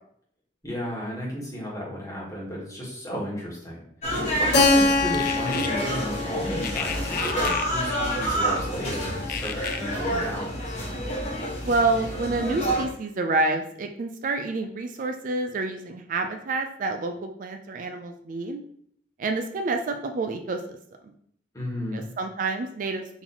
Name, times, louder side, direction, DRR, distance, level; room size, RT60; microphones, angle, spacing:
voice 1, 0.6-3.8 4.4-10.8 21.5-22.1, equal, 20° left, -5 dB, 1.4 m, -34 dB
sound 1, 4.0-12.8, equal, 40° left, 1.3 m, -29 dB
Keyboard (musical), 4.5-9.1, left 3 dB, 70° left, 1.1 m, -26 dB
sound 2, 5.1-5.7 6.6-7.7 9.3-9.8, left 8 dB, 55° left, 0.4 m, -32 dB
voice 2, 11.6-18.6 19.2-20.8 21.1-21.2 21.9-23.2, right 3 dB, 45° right, 5 dB, 0.4 m, -28 dB
3.9 x 2.8 x 4.2 m, 0.65 s
head